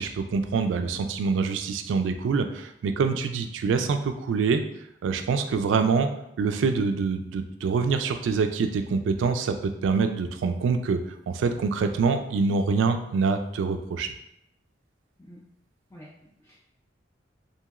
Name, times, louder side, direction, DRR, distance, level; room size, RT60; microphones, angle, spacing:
voice 1, 0.0-4.6 5.0-6.1 6.4-9.5 9.8-11.0 11.3-14.1, right 5 dB, 85° right, 7 dB, 0.3 m, -25 dB
voice 2, 15.9-16.6, equal, 15° left, -5 dB, 0.3 m, -49 dB
2.9 x 2.7 x 2.3 m, 0.79 s
head